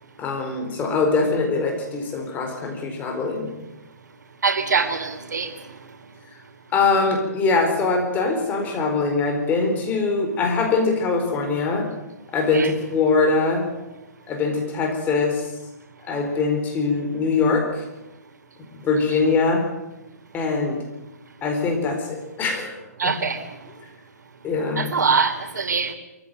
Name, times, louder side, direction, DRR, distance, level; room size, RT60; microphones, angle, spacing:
voice 1, 0.2-3.5 6.7-11.9 12.3-13.7 14.3-15.4 16.1-17.8 18.8-19.6 20.3-20.8 21.4-22.7 23.0-23.1 24.4-24.9, left 4 dB, 20° left, 4.5 m, -22 dB
voice 2, 4.4-5.5 12.5-12.7 23.0-23.4 24.8-25.9, right 5 dB, 85° right, 3.2 m, -23 dB
23.5 x 15.0 x 9.2 m
hypercardioid pair, 150°, 9 cm